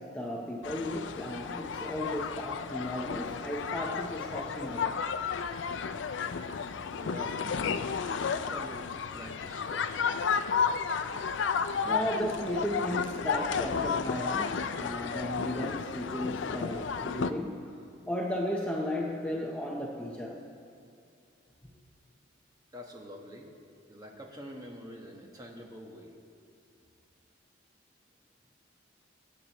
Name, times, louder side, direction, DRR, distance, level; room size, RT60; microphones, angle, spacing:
voice 1, 0.0-5.0 11.8-17.7 18.1-20.4, equal, 5° left, -2 dB, 0.7 m, -35 dB
sound 1, 0.6-17.3, left 6 dB, 70° left, 0.4 m, -32 dB
voice 2, 6.9-8.2 8.4-10.0 22.7-23.5 23.9-26.1, equal, 20° right, 0 dB, 1.2 m, -46 dB
22.5 x 8.3 x 3.0 m, 2.4 s
head